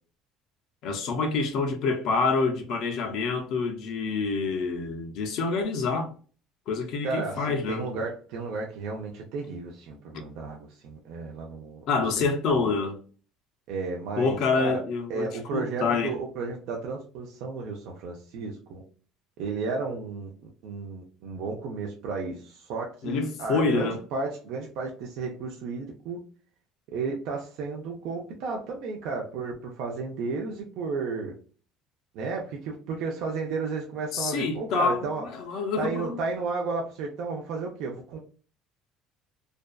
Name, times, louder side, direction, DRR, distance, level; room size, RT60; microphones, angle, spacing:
voice 1, 0.8-6.1 6.7-8.0 11.9-13.0 14.2-16.1 23.0-24.0 34.1-36.2, left 4 dB, 55° left, 0.5 m, -27 dB
voice 2, 7.0-12.7 13.7-14.8 15.1-18.8 19.4-26.2 26.9-31.3 32.1-35.3 35.8-38.2, right 4 dB, 65° right, 0.5 m, -33 dB
2.5 x 2.2 x 2.2 m
cardioid pair, 150°, 0 cm